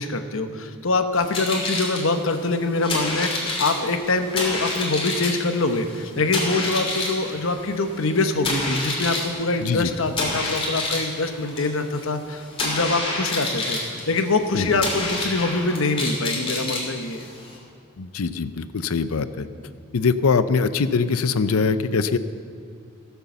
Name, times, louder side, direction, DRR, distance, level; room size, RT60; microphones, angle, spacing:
voice 1, 0.0-17.3, left 3 dB, 70° left, 7 dB, 1.0 m, -24 dB
sound 1, 1.1-17.6, left 2 dB, 25° left, 2.7 m, -29 dB
voice 2, 18.0-19.4 19.9-22.2, left 5 dB, 90° left, 13 dB, 0.6 m, -22 dB
17.5 x 7.0 x 6.9 m, 2.4 s
head